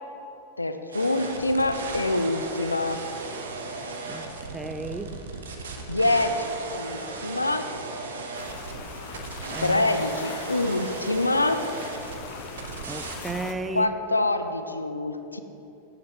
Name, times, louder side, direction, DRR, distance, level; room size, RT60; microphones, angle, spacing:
voice 1, 0.6-3.0 5.9-7.7 9.6-11.7 13.7-15.4, left 2 dB, 85° left, 8 dB, 0.5 m, -25 dB
sound 1, 0.9-13.4, right 3 dB, 65° right, 1.0 m, -36 dB
voice 2, 4.5-5.2 9.5-9.8 12.8-13.9, right 3 dB, 15° right, 9 dB, 0.5 m, -34 dB
sound 2, 8.4-13.5, left 7 dB, 40° left, 0.6 m, -41 dB
9.3 x 7.5 x 4.2 m, 2.9 s
figure-of-eight pair, 90°, 0 cm